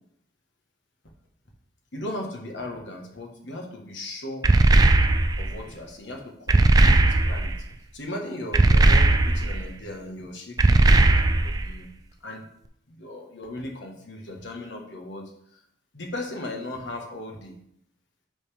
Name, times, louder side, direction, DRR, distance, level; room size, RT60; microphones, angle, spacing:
voice 1, 1.9-4.5 5.4-7.7 7.9-11.9 12.2-12.4 12.9-15.6 15.9-17.5, left 1 dB, 70° left, 1 dB, 1.4 m, -37 dB
sound 1, 4.4-5.5 6.5-7.6 8.5-9.6 10.6-11.7, right 2 dB, 20° right, 0.3 m, -18 dB
10.0 x 4.1 x 3.5 m, 0.73 s
head